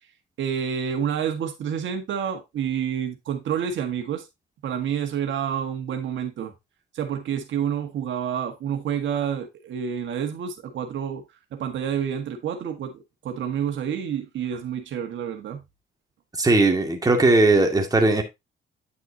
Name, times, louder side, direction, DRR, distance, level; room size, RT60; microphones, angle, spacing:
voice 1, 0.4-4.3 4.6-6.5 6.9-11.2 11.5-15.6, right 8 dB, 70° right, 1.6 m, -28 dB
voice 2, 16.4-18.2, right 2 dB, 20° right, 2.2 m, -18 dB
9.6 x 6.0 x 2.8 m
cardioid pair, 90°, 20 cm